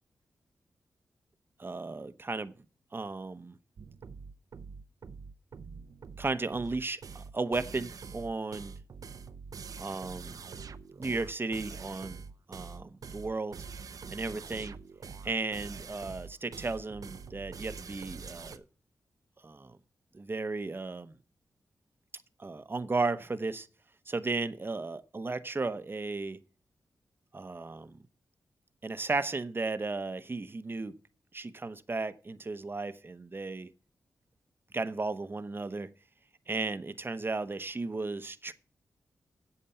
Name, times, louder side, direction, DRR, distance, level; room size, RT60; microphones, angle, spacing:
voice 1, 1.6-2.5 2.9-3.6 6.2-8.7 9.8-10.4 10.9-13.6 14.1-14.8 15.2-18.6 19.4-19.8 20.1-21.1 22.4-23.7 24.1-26.4 27.3-28.0 28.8-31.0 31.3-33.7 34.7-35.9 36.5-38.5, right 3 dB, 35° right, 0.9 m, -35 dB
sound 1, 3.8-18.6, right 5 dB, 65° right, 0.8 m, -45 dB
8.7 x 6.7 x 6.9 m
cardioid pair, 45°, 6 cm